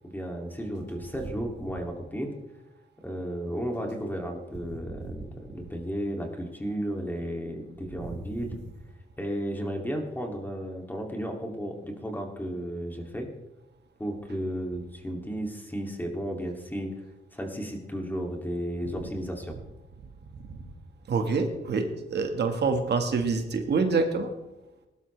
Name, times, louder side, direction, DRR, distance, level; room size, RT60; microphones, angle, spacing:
voice 1, 0.1-2.3 3.0-5.2 5.5-8.6 9.2-13.3 14.0-16.9 17.3-19.6, equal, 10° left, 2 dB, 2.7 m, -33 dB
voice 2, 21.1-24.3, right 4 dB, 70° right, 5 dB, 1.7 m, -27 dB
19.5 x 12.0 x 3.4 m, 1.0 s
cardioid pair, 105°, 18 cm